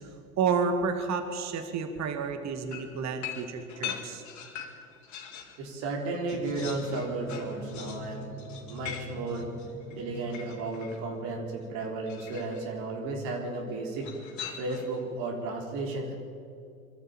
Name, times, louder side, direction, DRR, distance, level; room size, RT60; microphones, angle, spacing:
voice 1, 0.4-4.2, right 5 dB, 40° right, 7 dB, 2.3 m, -30 dB
sound 1, 2.7-5.6 6.0-11.0 12.1-12.7 14.0-15.0, left 8 dB, 40° left, 4.0 m, -42 dB
voice 2, 5.6-8.3 8.7-9.5 9.9-14.1 14.6-16.1, right 3 dB, 55° right, 0 dB, 4.2 m, -33 dB
Drum, 6.3-11.4, left 1 dB, 5° left, 2.9 m, -44 dB
25.0 x 12.5 x 9.0 m, 2.5 s
hypercardioid pair, 85°, 42 cm